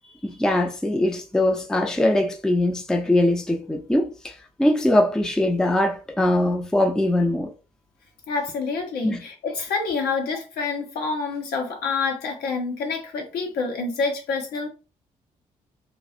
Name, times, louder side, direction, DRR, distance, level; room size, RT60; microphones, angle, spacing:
voice 1, 0.2-7.5 9.0-9.2, left 1 dB, 5° left, 0.4 m, -22 dB
voice 2, 8.3-14.7, left 4 dB, 60° left, 0.8 m, -27 dB
2.3 x 2.0 x 2.6 m
figure-of-eight pair, 40°, 18 cm